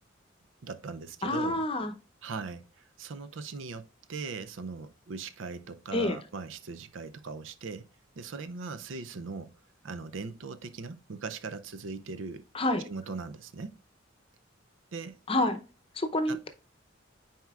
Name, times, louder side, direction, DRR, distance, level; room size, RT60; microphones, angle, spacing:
voice 1, 0.6-1.6 2.2-2.6 3.0-7.9 8.2-9.5 9.8-12.4 12.9-13.8 14.9-15.2 16.3-16.4, right 4 dB, 75° right, 0.5 m, -39 dB
voice 2, 1.2-1.9 5.9-6.2 12.5-12.8 15.3-15.6 16.0-16.5, left 1 dB, 30° left, 0.7 m, -28 dB
9.2 x 4.3 x 2.4 m
head